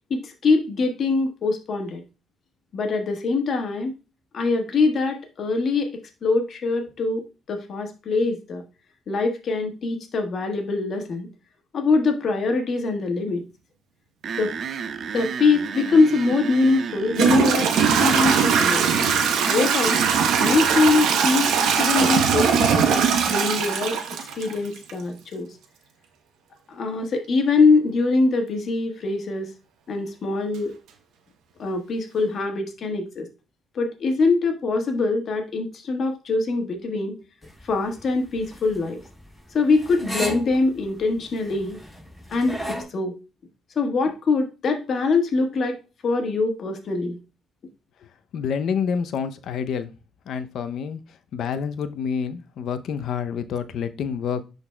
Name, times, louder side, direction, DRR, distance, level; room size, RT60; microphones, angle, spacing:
voice 1, 0.1-2.0 2.7-3.9 4.3-5.9 6.2-8.6 9.1-11.3 11.7-13.5 14.4-14.5 15.1-17.7 18.0-18.8 19.5-20.0 20.4-24.0 24.4-25.5 26.7-29.5 29.9-30.7 31.6-33.3 33.7-37.1 37.6-39.0 39.5-41.8 42.3-43.1 43.7-45.8 46.0-47.2, left 3 dB, 55° left, 5 dB, 1.5 m, -23 dB
sound 1, 14.2-20.8, right 6 dB, 60° right, 0.5 m, -32 dB
Toilet flush / Trickle dribble, 16.3-16.4 17.1-24.9, right 6 dB, 85° right, 0.8 m, -20 dB
sound 2, 37.4-42.8, equal, ahead, 3.0 m, -35 dB
voice 2, 48.3-49.9 50.3-51.0 51.3-54.4, left 7 dB, 75° left, 10 dB, 0.6 m, -28 dB
11.0 x 4.0 x 2.2 m, 0.30 s
cardioid pair, 90°, 0 cm